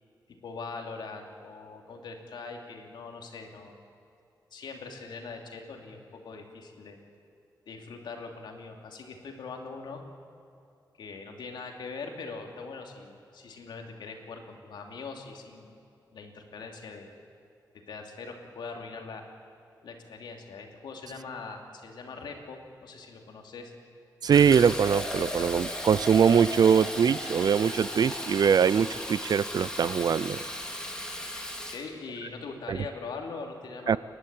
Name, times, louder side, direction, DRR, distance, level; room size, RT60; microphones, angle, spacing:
voice 1, 0.3-3.8 4.5-7.0 7.7-10.0 11.0-15.7 16.1-17.1 17.7-19.2 19.8-23.7 31.7-34.0, left 4 dB, 85° left, 3 dB, 2.8 m, -42 dB
voice 2, 24.2-30.4 32.7-32.8 33.9-34.0, right 7 dB, 60° right, 19 dB, 0.5 m, -22 dB
Fill (with liquid), 24.3-31.8, left 1 dB, 10° left, 3.2 m, -36 dB
29.5 x 11.5 x 9.0 m, 2.7 s
wide cardioid pair, 100°, 8 cm